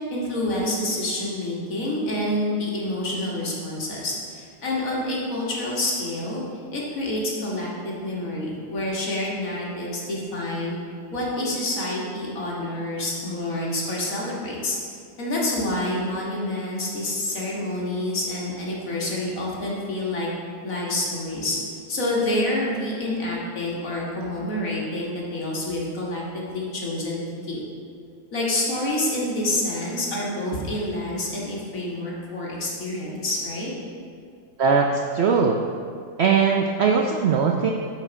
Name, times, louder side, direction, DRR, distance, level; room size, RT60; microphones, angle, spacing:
voice 1, 0.1-6.4 6.7-10.8 11.1-14.8 15.2-20.3 20.6-21.6 21.9-27.6 28.3-33.7, left 1 dB, 55° left, -4 dB, 2.0 m, -28 dB
voice 2, 34.6-35.6 36.2-37.7, right 5 dB, 90° right, 1 dB, 0.5 m, -20 dB
8.5 x 4.8 x 5.1 m, 2.3 s
omnidirectional pair, 1.7 m